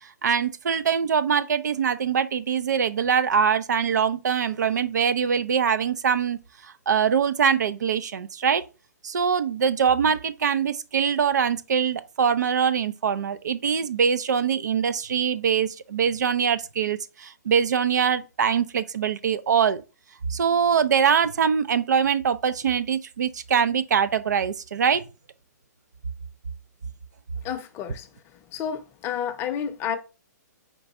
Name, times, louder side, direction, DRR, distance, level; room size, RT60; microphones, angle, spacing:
voice 1, 0.0-6.4 6.6-8.6 9.0-19.8 20.3-25.0, right 7 dB, 75° right, 0.5 m, -23 dB
voice 2, 27.4-28.1 28.5-30.0, left 8 dB, 25° left, 0.6 m, -30 dB
4.5 x 2.5 x 4.1 m
hypercardioid pair, 135°, 10 cm